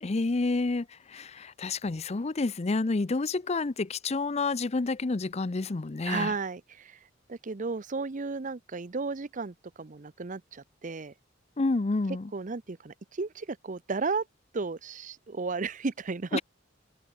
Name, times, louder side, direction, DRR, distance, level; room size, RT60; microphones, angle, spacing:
voice 1, 0.0-6.3 11.6-12.3 16.3-16.4, left 3 dB, 35° left, 0.6 m, -29 dB
voice 2, 6.0-7.0 7.3-11.1 12.3-14.2 14.5-16.4, right 4 dB, 40° right, 0.7 m, -34 dB
open air
head